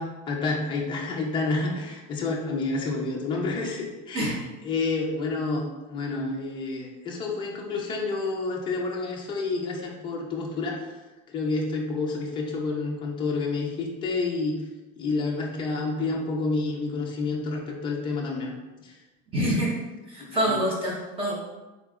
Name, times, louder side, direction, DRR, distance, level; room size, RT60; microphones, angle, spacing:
voice 1, 0.0-10.9 11.3-14.6 15.0-18.5 18.8-18.9 19.4-19.6 20.2-20.5, left 3 dB, 15° left, -2 dB, 0.4 m, -29 dB
voice 2, 19.3-19.7 20.1-21.3, equal, 20° right, -4 dB, 0.8 m, -26 dB
3.7 x 3.1 x 3.5 m, 1.1 s
cardioid pair, 180°, 29 cm